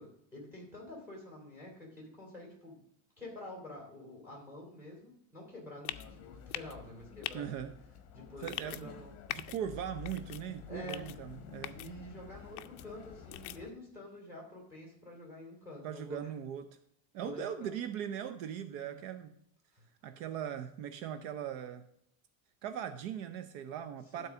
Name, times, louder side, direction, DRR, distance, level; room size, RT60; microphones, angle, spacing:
voice 1, 0.0-2.8 3.2-7.7 8.1-9.4 10.7-11.1 11.7-16.3 17.1-17.7 18.6-19.0 19.7-19.8 24.1-24.3, left 1 dB, 5° right, -2 dB, 3.1 m, -48 dB
sound 1, 5.9-6.1 6.5-6.8 7.2-7.4 8.4-8.8 9.3-9.6 10.1-10.4 10.9-11.2 11.6-11.9 12.6-12.8 13.3-13.6, left 16 dB, 50° left, 0.5 m, -41 dB
sound 2, 5.9-13.7, left 7 dB, 35° left, 1.2 m, -51 dB
voice 2, 7.3-7.7 8.4-8.9 9.3-11.8 15.8-16.6 17.1-19.3 20.0-21.8 22.6-24.3, right 9 dB, 65° right, 9 dB, 0.7 m, -39 dB
12.0 x 4.1 x 6.1 m, 0.75 s
cardioid pair, 180°, 43 cm